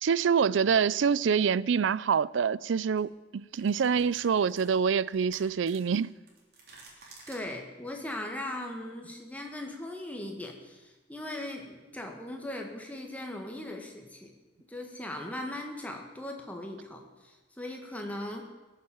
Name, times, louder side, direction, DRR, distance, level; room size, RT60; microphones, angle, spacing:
voice 1, 0.0-6.1, right 6 dB, 85° right, 0.4 m, -26 dB
sound 1, 0.8-1.0 2.4-2.6 3.0-3.1 3.5-7.4, right 3 dB, 55° right, 3.5 m, -53 dB
voice 2, 7.3-14.3 14.7-18.5, left 1 dB, 10° left, 1.8 m, -39 dB
18.5 x 7.5 x 8.7 m
head